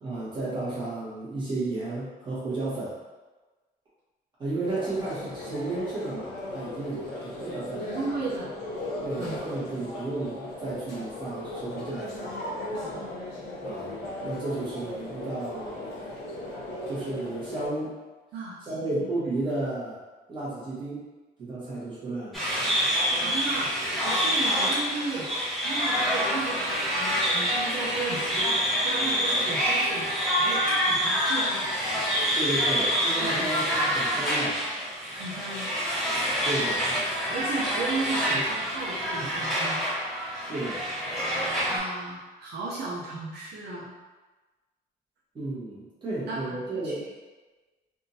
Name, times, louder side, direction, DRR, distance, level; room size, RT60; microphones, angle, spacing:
voice 1, 0.0-3.0 4.4-8.1 9.0-12.4 13.6-13.9 14.2-15.8 16.9-17.9 18.6-20.0 20.3-21.1 21.4-22.4 32.3-34.6 36.4-36.8 40.3-40.9 45.3-47.1, right 2 dB, 25° right, -10 dB, 1.4 m, -33 dB
sound 1, 4.6-17.7, left 1 dB, 75° left, 0.8 m, -37 dB
voice 2, 7.9-8.5 9.2-9.3 12.9-13.0 18.3-19.0 23.1-23.7 24.0-25.3 25.6-31.6 33.2-33.5 35.1-35.7 37.3-39.8 41.7-43.9 46.3-46.6 46.8-47.1, right 3 dB, 75° right, -5 dB, 0.6 m, -35 dB
sound 2, 22.3-41.8, equal, ahead, 0.8 m, -27 dB
3.5 x 2.6 x 2.7 m, 1.2 s
cardioid pair, 175°, 17 cm